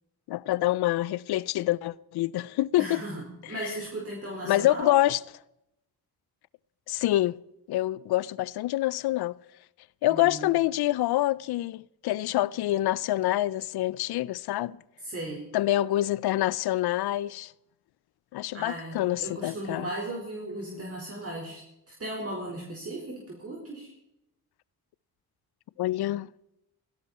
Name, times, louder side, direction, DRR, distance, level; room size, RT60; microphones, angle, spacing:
voice 1, 0.3-3.0 4.5-5.2 6.9-7.4 7.7-9.4 10.0-14.8 15.5-17.5 18.3-19.9 25.8-26.3, left 15 dB, 80° left, 0.6 m, -26 dB
voice 2, 2.8-5.0 10.1-10.6 15.0-15.5 18.5-21.6 21.9-23.9, right 1 dB, 40° right, 4.5 m, -37 dB
17.5 x 16.5 x 4.3 m
cardioid pair, 80°, 38 cm